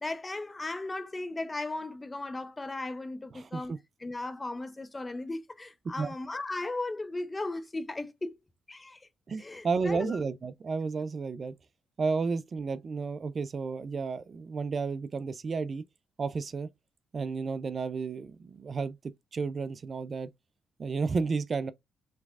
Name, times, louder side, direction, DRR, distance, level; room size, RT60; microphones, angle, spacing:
voice 1, 0.0-8.3 8.7-9.1 9.4-10.2, left 2 dB, 20° left, 0.8 m, -36 dB
voice 2, 3.3-3.8 6.0-6.1 9.3-11.5 12.0-15.8 16.2-16.7 17.1-19.0 19.3-20.3 20.8-21.7, right 4 dB, 40° right, 0.5 m, -32 dB
6.6 x 3.2 x 2.4 m
cardioid pair, 90°, 0 cm